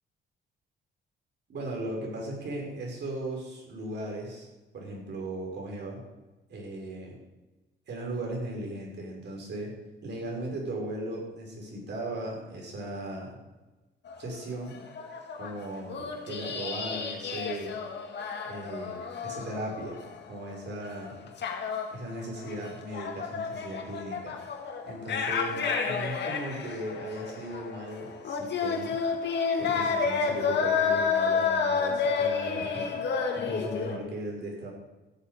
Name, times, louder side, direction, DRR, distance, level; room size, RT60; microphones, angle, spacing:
voice 1, 1.5-4.5 4.7-6.0 6.5-7.2 7.9-9.7 10.0-13.4 14.2-14.8 15.4-17.8 18.4-20.0 20.3-21.2 21.9-24.4 24.9-29.0 29.6-33.0 33.3-34.7, right 1 dB, 60° right, -1 dB, 5.5 m, -37 dB
Women song echo, 14.1-14.4 14.7-20.5 20.8-34.0, left 5 dB, 60° left, 2.4 m, -30 dB
14.5 x 8.1 x 6.8 m, 1.1 s
cardioid pair, 90°, 20 cm